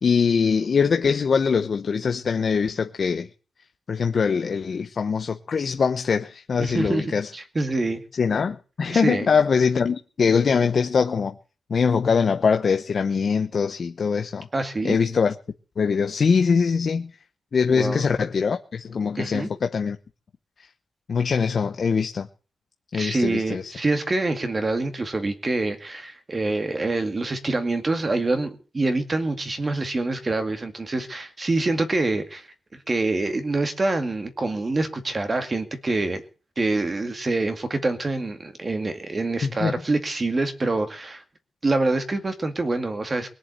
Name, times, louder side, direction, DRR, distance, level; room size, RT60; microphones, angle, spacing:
voice 1, 0.0-3.3 3.9-7.3 8.2-11.3 11.7-14.5 14.8-15.3 15.8-17.1 17.5-20.0 21.1-22.3 22.9-23.7 39.6-39.7, left 5 dB, 50° left, 0.9 m, -22 dB
voice 2, 6.6-8.0 8.9-9.3 14.5-15.0 17.7-18.1 19.2-19.5 23.0-32.5 32.9-36.2 36.6-41.2 41.6-43.3, right 2 dB, 25° right, 2.1 m, -26 dB
21.5 x 7.5 x 8.1 m
wide cardioid pair, 145°, 0 cm